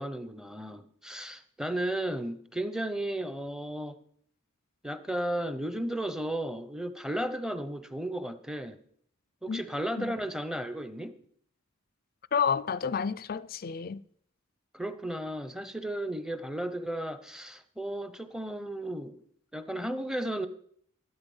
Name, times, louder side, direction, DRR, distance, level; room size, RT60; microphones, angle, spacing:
voice 1, 0.0-4.0 4.8-8.8 9.4-11.2 14.7-19.2 19.5-20.5, right 1 dB, 5° right, 0.7 m, -34 dB
voice 2, 12.3-14.0, left 6 dB, 45° left, 0.4 m, -30 dB
13.0 x 11.5 x 5.5 m
head